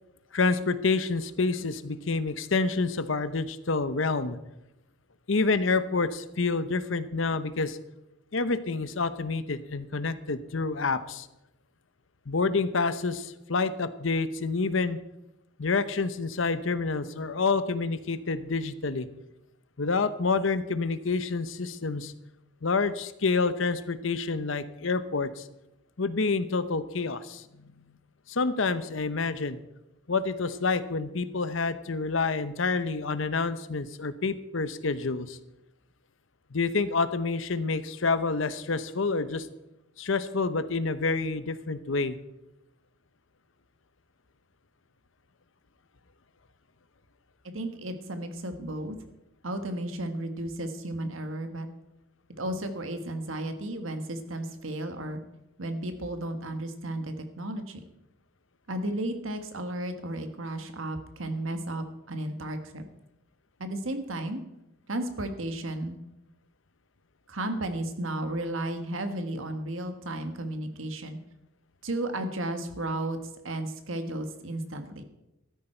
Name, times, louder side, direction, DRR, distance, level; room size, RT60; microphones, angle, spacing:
voice 1, 0.3-4.4 5.3-7.8 8.3-11.3 12.3-15.0 15.6-19.1 19.8-22.1 22.6-25.5 26.0-27.7 28.3-29.6 30.1-35.4 36.5-39.5 40.0-42.2, left 4 dB, 65° left, 13 dB, 0.8 m, -28 dB
voice 2, 47.5-49.0 49.4-51.7 52.4-55.2 55.6-57.8 58.7-62.8 63.6-64.4 64.9-66.0 67.3-71.2 71.8-73.2 73.4-75.0, right 1 dB, 75° right, 7 dB, 1.5 m, -33 dB
14.5 x 12.5 x 4.5 m, 0.92 s
head